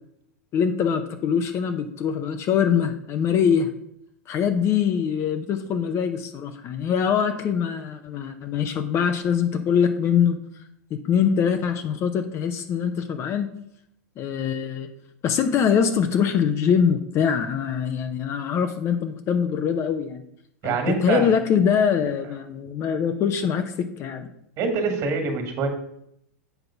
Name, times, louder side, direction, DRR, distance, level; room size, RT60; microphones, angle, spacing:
voice 1, 0.5-3.7 4.3-10.4 10.9-13.5 14.2-14.9 15.2-20.2 20.6-24.3, left 7 dB, 35° left, 7 dB, 0.6 m, -23 dB
voice 2, 20.6-21.3 22.0-22.1 24.6-25.7, right 4 dB, 45° right, 5 dB, 2.0 m, -25 dB
8.0 x 3.9 x 5.7 m, 0.75 s
hypercardioid pair, 110°, 8 cm